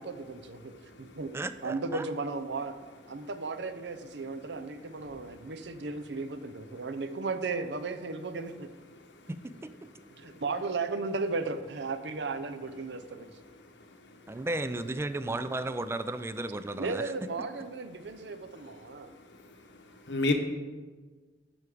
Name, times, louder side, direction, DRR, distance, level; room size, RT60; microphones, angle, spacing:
voice 1, 0.0-0.7 1.0-1.3 1.6-2.7 3.1-8.7 10.2-13.3 15.3-15.4 16.8-19.1, right 3 dB, 70° right, 10 dB, 0.6 m, -35 dB
voice 2, 0.7-1.2 3.2-3.3 5.1-5.5 9.9-10.4 13.5-13.7 14.3-14.5 18.6-19.4 20.1-20.3, left 2 dB, 75° left, 4 dB, 1.0 m, -35 dB
voice 3, 1.3-2.1 9.3-9.7 14.3-17.1, right 2 dB, 15° right, 12 dB, 0.3 m, -34 dB
11.5 x 4.9 x 5.0 m, 1.4 s
head